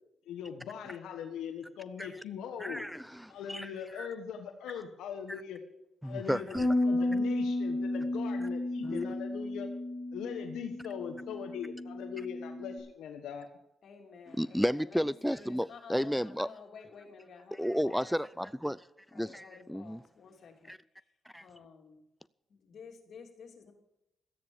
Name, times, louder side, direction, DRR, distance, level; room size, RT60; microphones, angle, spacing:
voice 1, 0.3-2.9 3.3-5.6 6.0-9.7 10.1-13.5, left 8 dB, 85° left, 1.3 m, -41 dB
voice 2, 2.6-3.7 4.0-4.1 6.0-6.7 8.8-9.0 14.3-16.5 17.5-18.8 19.1-20.0 20.6-20.8 21.3-21.4, equal, ahead, 0.4 m, -33 dB
Bass guitar, 6.5-12.8, left 2 dB, 20° right, 7.2 m, -33 dB
voice 3, 13.8-18.1 19.1-20.7 21.4-22.0 22.5-23.7, left 5 dB, 65° left, 3.0 m, -52 dB
14.0 x 9.7 x 7.1 m
supercardioid pair, 65°, 0 cm